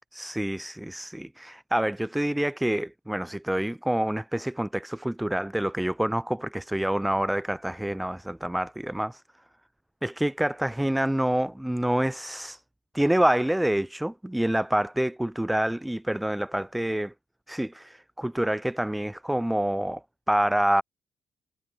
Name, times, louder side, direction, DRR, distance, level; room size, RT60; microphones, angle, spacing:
voice 1, 0.1-9.2 10.0-12.6 12.9-17.1 17.5-20.0 20.3-20.8, right 1 dB, 5° right, 1.3 m, -27 dB
cardioid pair, 90°, 0 cm